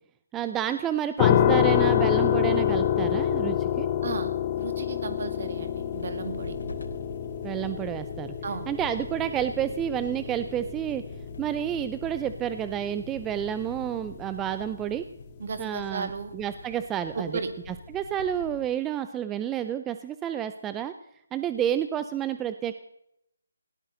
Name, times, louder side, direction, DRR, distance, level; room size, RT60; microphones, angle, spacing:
voice 1, 0.3-3.9 7.4-8.3 8.7-11.0 11.4-15.0 15.6-17.3 17.9-20.9 21.3-22.7, right 10 dB, 10° right, 11 dB, 0.5 m, -30 dB
sound 1, 1.2-14.0, left 10 dB, 25° left, 0.8 m, -27 dB
voice 2, 4.0-6.6 8.4-8.7 15.4-16.3 17.1-17.5, right 4 dB, 50° right, 8 dB, 2.2 m, -35 dB
sound 2, 5.6-18.6, equal, 80° left, 4.1 m, -44 dB
19.5 x 17.0 x 3.9 m, 0.80 s
figure-of-eight pair, 155°, 0 cm